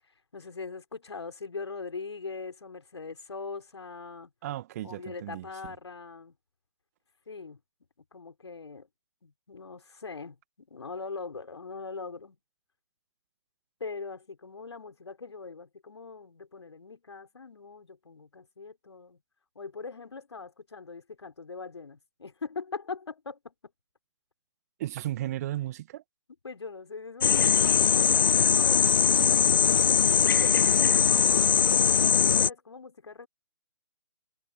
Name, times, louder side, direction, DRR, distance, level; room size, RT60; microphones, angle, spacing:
voice 1, 0.3-4.3 4.8-6.3 7.3-7.6 8.1-8.9 9.2-12.4 13.8-19.2 19.5-23.5 26.4-28.9 30.1-33.3, left 4 dB, 60° left, 6.1 m, -41 dB
voice 2, 4.4-5.7 24.8-26.0, right 14 dB, 30° right, 2.1 m, -35 dB
sound 1, 27.2-32.5, left 7 dB, 45° left, 0.4 m, -21 dB
figure-of-eight pair, 135°, 16 cm